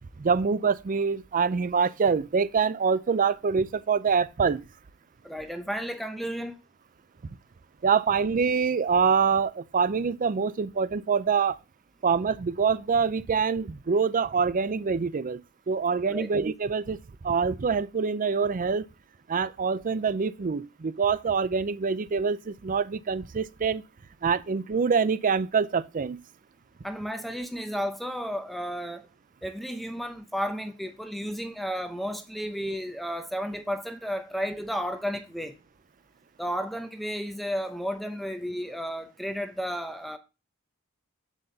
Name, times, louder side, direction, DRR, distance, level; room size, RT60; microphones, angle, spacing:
voice 1, 0.2-4.6 7.8-11.6 12.0-15.4 15.7-17.0 17.2-18.9 19.3-23.8 24.2-26.2, right 5 dB, 40° right, 0.5 m, -25 dB
voice 2, 5.2-6.6 16.1-16.3 26.8-29.1 29.4-35.6 36.4-40.2, equal, ahead, 0.8 m, -33 dB
7.8 x 7.3 x 2.7 m
head